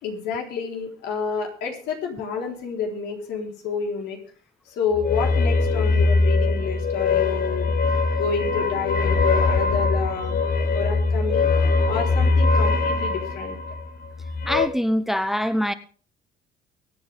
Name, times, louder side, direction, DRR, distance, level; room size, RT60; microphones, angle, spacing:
voice 1, 0.0-4.2 4.7-7.8 8.1-10.4 10.7-11.5 11.9-13.6, left 6 dB, 85° left, 3.8 m, -29 dB
sound 1, 4.9-14.7, left 3 dB, 55° left, 1.5 m, -22 dB
voice 2, 14.5-15.7, equal, ahead, 0.8 m, -23 dB
23.5 x 8.7 x 3.5 m
cardioid pair, 110°, 17 cm